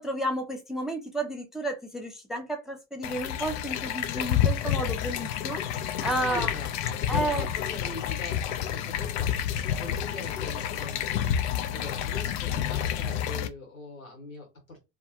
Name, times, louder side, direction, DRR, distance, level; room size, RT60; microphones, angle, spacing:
voice 1, 0.0-6.5 7.1-7.5, right 1 dB, ahead, 0.5 m, -32 dB
sound 1, 3.0-13.5, left 9 dB, 55° left, 0.5 m, -29 dB
voice 2, 6.1-14.8, left 2 dB, 90° left, 1.1 m, -42 dB
2.3 x 2.1 x 2.7 m
figure-of-eight pair, 70°, 40 cm